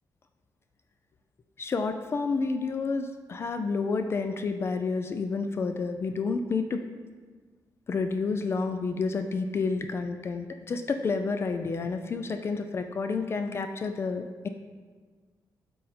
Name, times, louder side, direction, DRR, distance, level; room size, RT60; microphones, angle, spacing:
voice 1, 1.6-6.8 7.9-14.5, left 4 dB, 35° left, 7 dB, 0.3 m, -30 dB
8.3 x 3.8 x 4.2 m, 1.5 s
wide cardioid pair, 150°, 7 cm